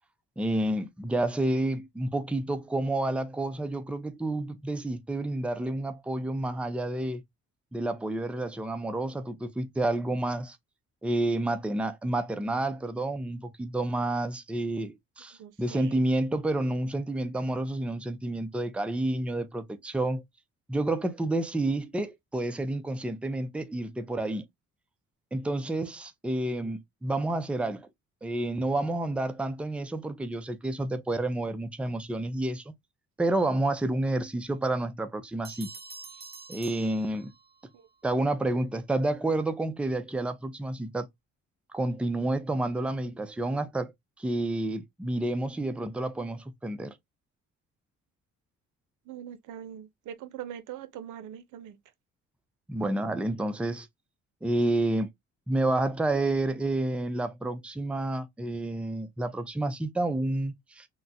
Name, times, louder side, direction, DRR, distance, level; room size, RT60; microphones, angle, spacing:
voice 1, 0.4-7.2 7.7-10.6 11.0-20.2 20.7-24.4 25.3-27.9 28.2-32.7 33.2-35.7 36.5-37.3 38.0-41.1 41.7-43.9 44.2-46.9 52.7-53.9 54.4-55.1 55.5-60.9, right 2 dB, 5° right, 0.4 m, -29 dB
voice 2, 15.3-16.0 37.7-37.9 49.1-51.8, right 10 dB, 80° right, 0.6 m, -42 dB
Bell, 35.4-37.7, right 4 dB, 35° right, 0.9 m, -46 dB
3.6 x 2.0 x 2.6 m
cardioid pair, 90°, 30 cm